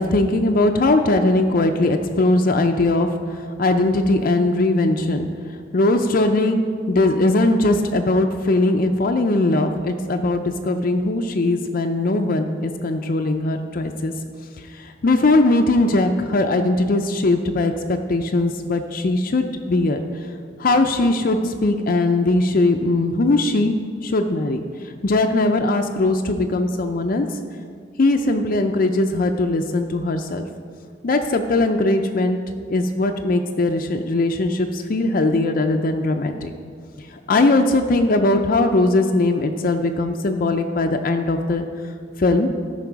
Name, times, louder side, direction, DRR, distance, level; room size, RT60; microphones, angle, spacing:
voice 1, 0.0-5.3 5.7-6.6 6.9-14.1 14.6-20.0 20.6-27.3 28.0-30.5 31.0-32.4 32.7-36.5 37.1-41.7 42.2-42.5, left 2 dB, 50° left, 5 dB, 0.5 m, -20 dB
13.5 x 5.8 x 4.7 m, 2.1 s
head